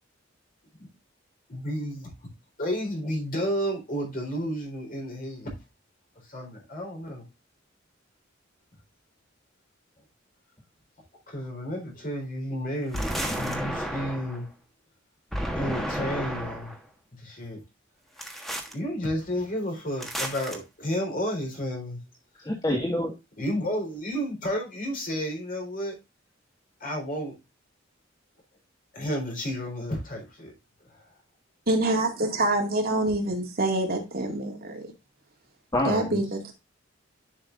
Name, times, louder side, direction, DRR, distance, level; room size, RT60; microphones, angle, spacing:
voice 1, 1.5-2.1 2.6-5.5 6.3-7.2 11.3-14.5 15.5-16.7 17.2-17.6 18.7-22.0 23.4-26.0 26.8-27.3 28.9-30.5, equal, 45° left, 3.9 m, -31 dB
sound 1, 12.9-14.4 15.3-16.8 18.2-18.7 20.0-20.6, equal, ahead, 1.4 m, -32 dB
voice 2, 22.4-23.1 35.7-36.2, left 1 dB, 20° left, 1.6 m, -26 dB
voice 3, 31.7-34.9 35.8-36.5, right 2 dB, 50° right, 2.1 m, -26 dB
10.5 x 5.7 x 2.4 m
head